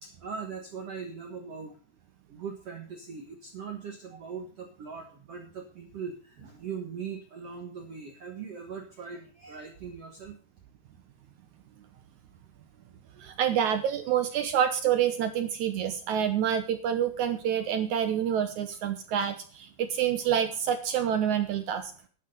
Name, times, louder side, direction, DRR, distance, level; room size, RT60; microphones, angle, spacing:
voice 1, 0.0-1.7 2.3-10.4 18.7-18.8, right 6 dB, 50° right, 3 dB, 2.0 m, -40 dB
voice 2, 13.2-21.9, right 9 dB, 70° right, 9 dB, 1.9 m, -27 dB
12.0 x 9.5 x 5.4 m, 0.41 s
omnidirectional pair, 4.5 m